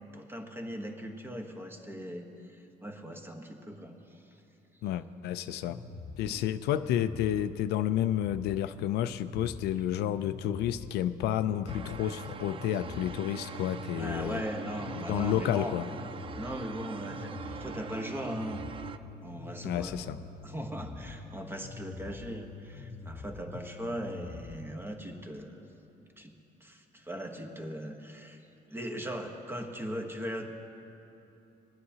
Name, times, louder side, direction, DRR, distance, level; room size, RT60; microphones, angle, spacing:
voice 1, 0.1-4.2 6.2-6.4 14.0-15.8 16.4-18.6 19.2-20.0 20.4-25.6 26.2-26.3 26.6-28.4 28.7-30.5, equal, 15° right, 3 dB, 1.1 m, -39 dB
voice 2, 4.8-5.8 6.2-14.4 15.0-15.8 19.6-20.2, left 11 dB, 75° left, 12 dB, 0.4 m, -30 dB
sound 1, 5.7-24.7, left 4 dB, 50° left, 0.8 m, -45 dB
sound 2, 11.7-19.0, right 6 dB, 30° right, 0.4 m, -43 dB
22.0 x 9.5 x 2.8 m, 2.9 s
cardioid pair, 110°, 17 cm